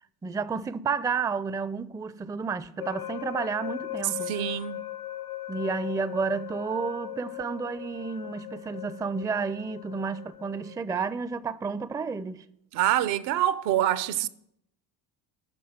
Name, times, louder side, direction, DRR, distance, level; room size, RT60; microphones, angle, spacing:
voice 1, 0.2-4.4 5.5-12.4, right 5 dB, 10° right, 0.4 m, -31 dB
sound 1, 2.8-10.8, left 15 dB, 80° left, 1.1 m, -39 dB
voice 2, 4.3-4.8 12.7-14.3, right 12 dB, 75° right, 0.8 m, -25 dB
10.5 x 6.0 x 8.8 m
supercardioid pair, 70°, 50 cm